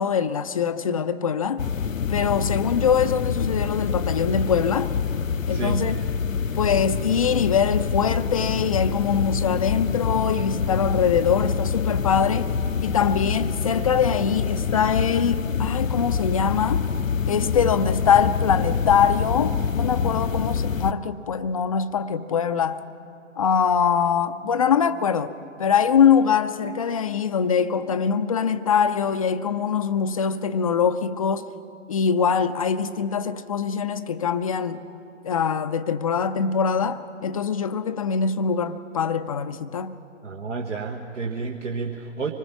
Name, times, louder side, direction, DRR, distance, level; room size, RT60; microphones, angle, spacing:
voice 1, 0.0-1.6 2.1-4.9 5.5-6.0 6.5-12.5 12.8-16.8 17.3-22.8 23.4-25.3 25.6-31.5 31.9-34.8 35.2-40.0, left 7 dB, 30° left, 0.4 m, -23 dB
sound 1, 1.6-20.9, left 6 dB, 85° left, 0.6 m, -26 dB
voice 2, 5.5-5.9 40.2-42.3, right 4 dB, 65° right, 1.4 m, -30 dB
25.5 x 20.0 x 5.7 m
figure-of-eight pair, 120°, 38 cm